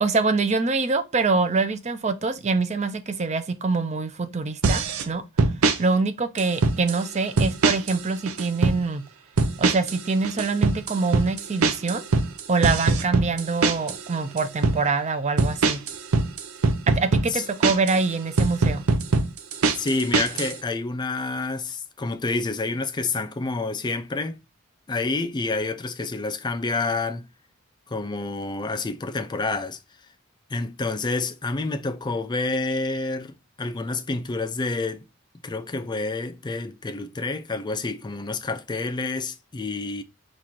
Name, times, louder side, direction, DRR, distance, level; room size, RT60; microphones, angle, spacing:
voice 1, 0.0-5.2 5.8-9.0 9.6-12.0 12.5-15.8 16.9-18.8, right 4 dB, 35° right, 0.6 m, -25 dB
sound 1, 4.6-5.0 5.4-5.8 6.4-7.0 7.4-8.0 8.3-8.8 9.4-10.0 10.2-14.0 14.4-14.8 15.4-18.0 18.4-20.5, right 3 dB, 90° right, 0.6 m, -21 dB
voice 2, 19.7-24.4 24.9-27.3 27.9-29.8 30.5-35.0 35.4-40.0, left 3 dB, 20° left, 0.4 m, -28 dB
4.3 x 2.5 x 4.4 m
head